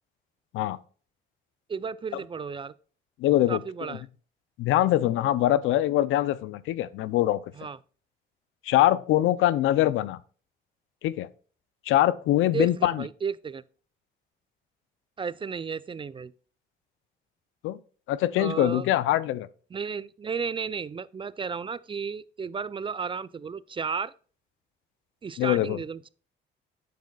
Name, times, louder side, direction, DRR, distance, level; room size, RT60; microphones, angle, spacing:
voice 1, 1.7-2.7 3.5-4.0 7.6-7.8 12.5-13.6 15.2-16.3 18.4-18.9 19.7-24.1 25.2-26.1, right 6 dB, 25° right, 0.3 m, -33 dB
voice 2, 3.2-3.6 3.9-4.0 4.6-7.4 8.6-10.2 11.0-11.3 11.9-13.0 17.6-17.8 18.1-19.5 25.4-25.8, left 14 dB, 85° left, 0.5 m, -23 dB
9.2 x 7.5 x 2.3 m
cardioid pair, 90°, 20 cm